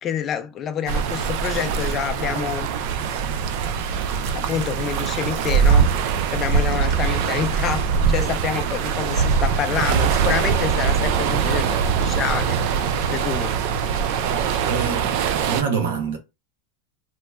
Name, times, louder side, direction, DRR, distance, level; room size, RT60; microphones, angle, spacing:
voice 1, 0.0-2.7 4.3-5.9 6.3-12.6 13.1-13.6, left 8 dB, 25° left, 0.4 m, -27 dB
sound 1, 0.9-15.6, right 6 dB, 50° right, 0.4 m, -22 dB
voice 2, 14.7-16.2, right 6 dB, 80° right, 1.0 m, -26 dB
2.9 x 2.2 x 3.4 m
supercardioid pair, 160°, 0 cm